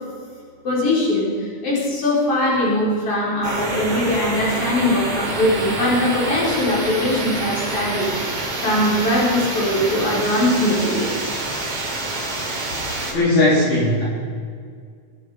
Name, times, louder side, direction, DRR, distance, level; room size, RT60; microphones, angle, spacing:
voice 1, 0.6-1.3 1.6-8.1 8.6-11.3, left 1 dB, 40° left, -5 dB, 5.6 m, -21 dB
sound 1, 3.4-13.1, right 2 dB, 45° right, 3.8 m, -27 dB
voice 2, 13.1-14.0, left 2 dB, 60° left, -7 dB, 5.2 m, -17 dB
24.0 x 10.0 x 5.1 m, 2.1 s
omnidirectional pair, 4.0 m